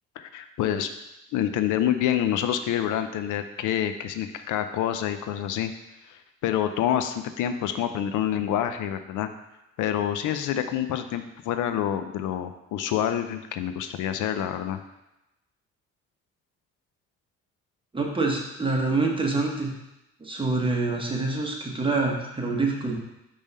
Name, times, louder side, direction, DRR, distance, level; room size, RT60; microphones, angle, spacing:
voice 1, 0.2-0.9 1.3-5.7 6.1-9.3 9.8-14.8, left 10 dB, 85° left, 9 dB, 0.5 m, -27 dB
voice 2, 17.9-19.7 20.2-23.0, right 3 dB, 15° right, 0 dB, 1.2 m, -26 dB
5.3 x 3.4 x 5.4 m, 0.93 s
cardioid pair, 90°, 30 cm